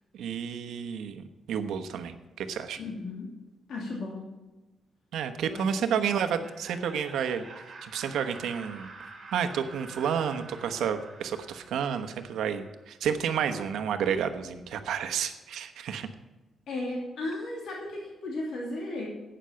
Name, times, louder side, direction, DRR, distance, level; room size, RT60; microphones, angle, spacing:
voice 1, 0.1-2.8 5.1-8.9 9.3-16.1, right 7 dB, 90° right, 8 dB, 1.1 m, -31 dB
voice 2, 2.8-3.3 3.7-4.3 5.5-5.9 16.7-19.1, left 2 dB, 65° left, -1 dB, 2.7 m, -35 dB
Laughter, 6.0-12.8, right 3 dB, 30° right, 3.0 m, -48 dB
11.5 x 9.0 x 5.8 m, 1.1 s
wide cardioid pair, 160°, 0 cm